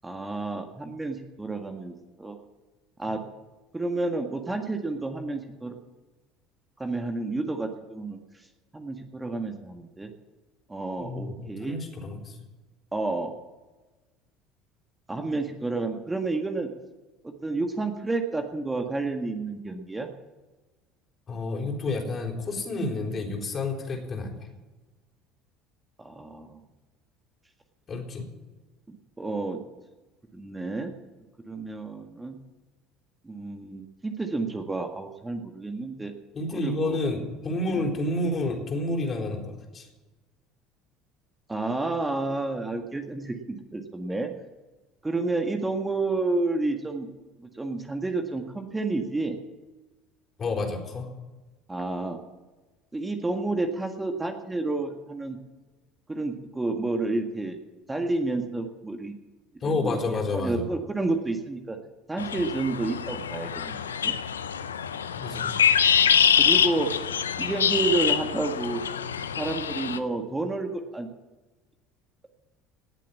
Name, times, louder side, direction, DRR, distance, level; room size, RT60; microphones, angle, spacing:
voice 1, 0.0-2.4 3.0-3.2 3.7-5.8 6.8-8.2 8.7-10.1 10.7-11.8 12.9-13.3 15.1-16.7 17.4-20.1 26.0-26.6 28.9-29.6 30.3-30.9 31.5-32.4 33.2-36.1 36.5-37.0 41.5-44.3 45.0-47.1 47.5-49.4 51.7-52.2 52.9-55.4 56.1-57.6 57.9-59.1 59.6-61.8 62.1-64.2 66.4-66.9 67.4-68.8 69.4-71.1, right 3 dB, 15° right, 4 dB, 1.8 m, -30 dB
voice 2, 11.0-12.4 21.3-24.5 27.9-28.2 36.3-39.9 50.4-51.1 59.6-60.6 65.2-65.6, left 2 dB, 35° left, 1 dB, 4.1 m, -30 dB
sound 1, 62.2-70.0, left 8 dB, 90° left, 0.6 m, -25 dB
18.5 x 7.6 x 8.5 m, 1.2 s
hypercardioid pair, 65°, 0 cm